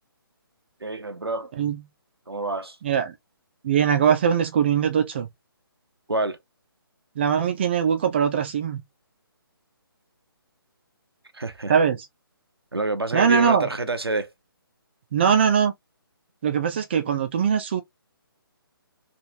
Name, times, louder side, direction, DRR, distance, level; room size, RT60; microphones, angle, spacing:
voice 1, 0.8-1.5 2.3-2.8 6.1-6.4 11.3-11.7 12.7-14.3, right 2 dB, 85° right, 0.6 m, -27 dB
voice 2, 3.6-5.3 7.2-8.8 11.7-12.0 13.1-13.7 15.1-15.7 16.4-17.8, right 7 dB, 30° right, 0.5 m, -21 dB
3.1 x 2.6 x 2.7 m
figure-of-eight pair, 140°, 13 cm